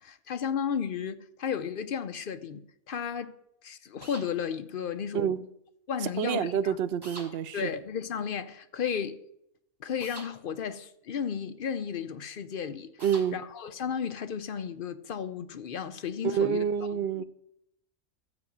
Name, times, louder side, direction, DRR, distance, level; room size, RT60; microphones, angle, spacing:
voice 1, 0.0-3.4 3.6-5.5 5.9-6.8 7.5-9.2 9.8-13.0 13.3-16.6 17.1-17.2, left 7 dB, 55° left, 0.6 m, -34 dB
sound 1, 4.0-4.3 7.0-7.3 10.0-10.3 13.0-13.3, right 1 dB, 15° right, 1.8 m, -43 dB
voice 2, 6.2-7.7 13.0-13.4 16.2-17.2, right 8 dB, 65° right, 0.6 m, -28 dB
13.0 x 4.9 x 8.5 m
omnidirectional pair, 1.5 m